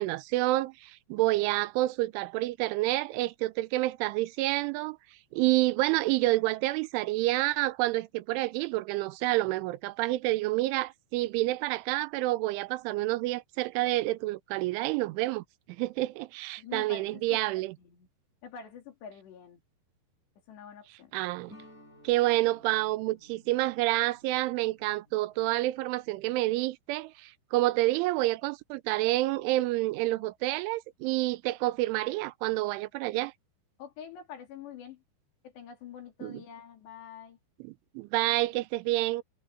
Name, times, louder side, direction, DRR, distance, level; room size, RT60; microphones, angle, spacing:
voice 1, 0.0-5.0 5.3-15.4 15.8-17.7 21.1-21.5 22.0-33.3 36.2-36.4 37.6-39.2, right 18 dB, 85° right, 3.2 m, -28 dB
voice 2, 16.6-17.4 17.8-18.1 18.4-19.6 20.5-21.1 33.8-35.0 35.4-37.4, left 8 dB, 65° left, 5.3 m, -46 dB
sound 1, 21.5-26.3, left 1 dB, 15° left, 6.3 m, -58 dB
omnidirectional pair, 5.4 m